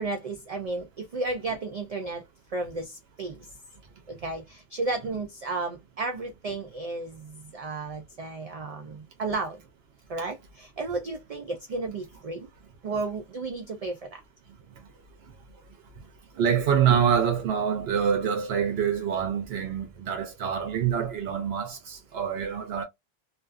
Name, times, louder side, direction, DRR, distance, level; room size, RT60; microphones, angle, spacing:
voice 1, 0.0-2.2 2.5-3.5 4.1-9.6 10.1-12.5 12.8-14.2, right 3 dB, 55° right, 0.4 m, -33 dB
voice 2, 16.4-22.8, right 8 dB, 80° right, 0.8 m, -26 dB
2.5 x 2.2 x 2.4 m
omnidirectional pair, 1.0 m